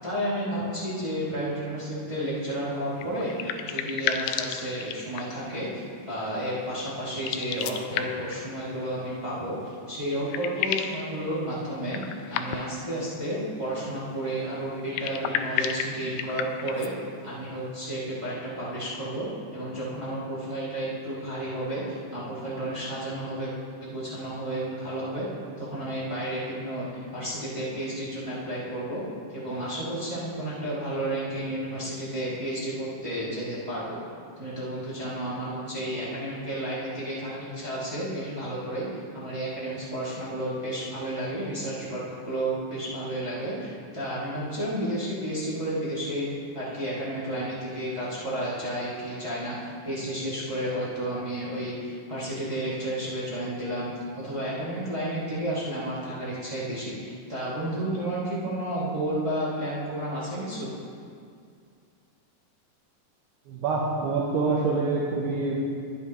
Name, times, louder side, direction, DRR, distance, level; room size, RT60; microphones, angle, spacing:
voice 1, 0.0-3.3 3.6-9.5 9.9-12.0 12.3-16.9 17.2-23.5 23.8-25.3 25.6-29.0 29.3-34.0 34.4-38.8 39.1-46.3 46.5-60.7, right 1 dB, 15° right, -9 dB, 1.2 m, -32 dB
sound 1, 2.9-5.5 7.1-8.4 9.7-9.8 10.1-11.0 11.9-12.8 14.8-16.9, left 9 dB, 85° left, 2.8 m, -31 dB
voice 2, 63.5-65.6, right 3 dB, 75° right, -3 dB, 2.9 m, -26 dB
21.0 x 7.8 x 3.1 m, 2.3 s
omnidirectional pair, 4.8 m